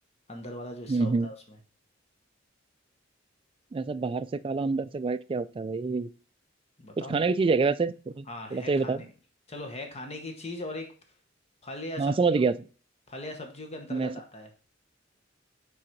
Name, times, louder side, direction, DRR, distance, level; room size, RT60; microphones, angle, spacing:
voice 1, 0.3-1.6 6.8-7.2 8.3-9.1 9.5-10.9 11.6-12.4 13.1-14.5, left 1 dB, 35° left, 5 dB, 1.0 m, -39 dB
voice 2, 0.9-1.3 3.7-6.1 7.0-8.3 8.5-9.0 12.0-12.6 13.9-14.1, right 4 dB, 30° right, 12 dB, 0.3 m, -26 dB
6.2 x 3.9 x 4.5 m, 0.38 s
head